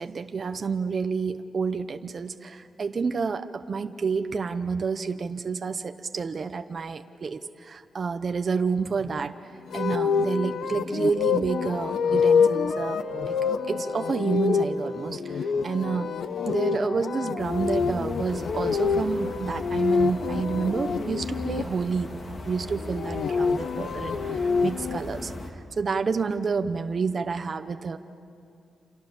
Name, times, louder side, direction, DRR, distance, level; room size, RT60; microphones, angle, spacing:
voice 1, 0.0-13.0 13.3-13.4 13.7-16.1 16.4-28.0, right 5 dB, 40° right, 8 dB, 0.8 m, -29 dB
sound 1, 9.7-21.6 22.8-25.0, left 5 dB, 80° left, 1.0 m, -26 dB
sound 2, 17.4-25.5, left 1 dB, 40° left, 2.2 m, -39 dB
29.0 x 28.0 x 7.2 m, 2.5 s
wide cardioid pair, 155°, 0 cm